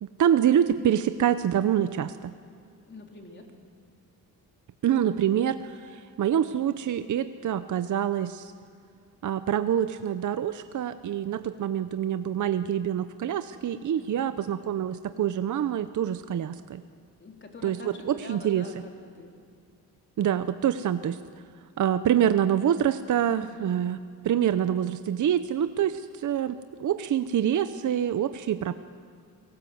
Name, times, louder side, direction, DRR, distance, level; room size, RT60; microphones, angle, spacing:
voice 1, 0.0-2.3 4.8-8.5 9.2-16.8 17.6-18.7 20.2-21.2 21.8-24.0 24.2-28.7, right 10 dB, 55° right, 11 dB, 0.7 m, -26 dB
voice 2, 2.9-3.4 13.9-14.3 17.2-19.3 23.4-23.8, left 3 dB, 30° left, 1 dB, 3.8 m, -45 dB
30.0 x 18.5 x 7.8 m, 2.2 s
cardioid pair, 125°, 36 cm